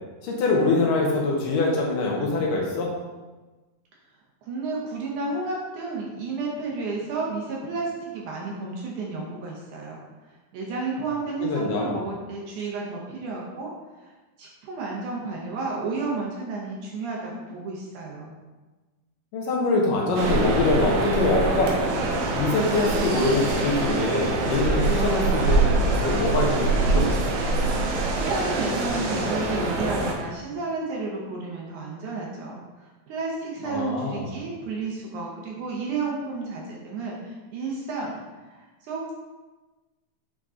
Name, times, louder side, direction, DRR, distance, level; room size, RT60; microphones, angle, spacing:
voice 1, 0.2-2.9 11.4-12.0 19.3-21.8 22.4-27.2 33.6-34.3, left 2 dB, 75° left, -1 dB, 2.4 m, -24 dB
voice 2, 4.4-13.7 14.0-14.1 14.4-18.4 28.1-32.6 33.1-39.1, right 3 dB, 70° right, -3 dB, 2.1 m, -32 dB
sound 1, 20.2-30.1, right 2 dB, 85° right, 2.8 m, -24 dB
8.1 x 3.7 x 3.7 m, 1.2 s
omnidirectional pair, 4.1 m